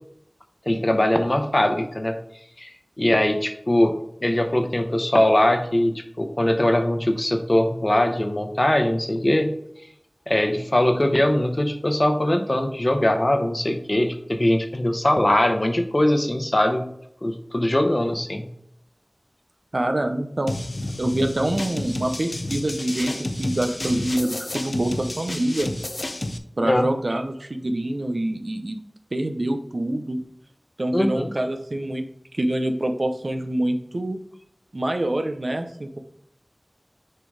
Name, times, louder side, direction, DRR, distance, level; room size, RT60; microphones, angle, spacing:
voice 1, 0.7-2.2 2.6-2.7 3.0-4.0 4.2-9.5 10.3-16.9 17.2-18.5 26.6-26.9 30.9-31.3, left 1 dB, 45° left, 6 dB, 0.9 m, -21 dB
voice 2, 19.7-20.5 21.0-25.7 26.6-28.8 29.1-30.2 30.8-32.0 32.3-34.2 34.7-36.0, right 1 dB, 80° right, 6 dB, 0.7 m, -26 dB
sound 1, 20.5-26.4, left 1 dB, 70° left, 0.6 m, -30 dB
6.6 x 3.9 x 4.9 m, 0.74 s
wide cardioid pair, 45°, 0 cm